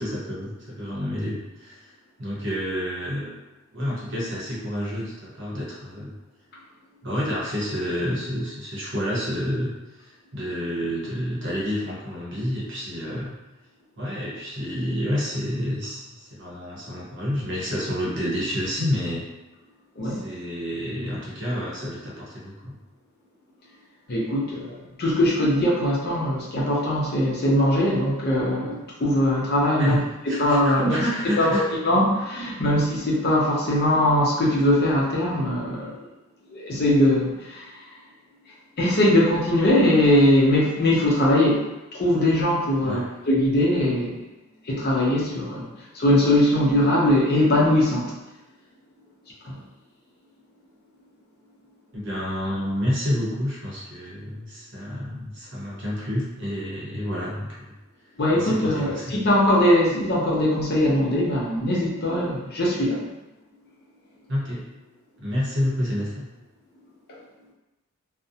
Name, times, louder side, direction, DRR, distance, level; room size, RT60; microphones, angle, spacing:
voice 1, 0.0-1.9 2.2-3.4 3.7-6.1 7.0-13.3 14.0-19.2 20.0-22.8 29.7-31.6 42.8-43.1 49.4-49.5 51.9-57.7 58.3-59.2 64.3-64.7 65.2-66.3, equal, 60° right, -4 dB, 0.7 m, -29 dB
voice 2, 24.1-30.0 30.3-31.0 31.4-36.0 36.5-37.6 38.8-44.2 44.7-45.7 45.9-48.1 49.5-49.6 58.2-63.0, left 1 dB, 50° left, -4 dB, 0.6 m, -21 dB
2.5 x 2.0 x 2.7 m, 1.0 s
head